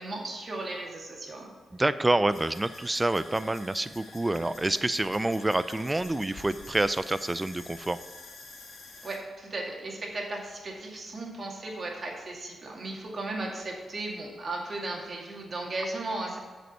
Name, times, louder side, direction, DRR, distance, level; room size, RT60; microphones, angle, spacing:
voice 1, 0.0-1.5 9.0-16.4, right 2 dB, 45° right, -1 dB, 2.1 m, -36 dB
voice 2, 1.7-8.0, right 2 dB, 15° right, 14 dB, 0.4 m, -27 dB
sound 1, 2.3-9.2, left 3 dB, 75° left, 1.9 m, -48 dB
7.6 x 5.3 x 6.7 m, 1.5 s
cardioid pair, 80°, 0 cm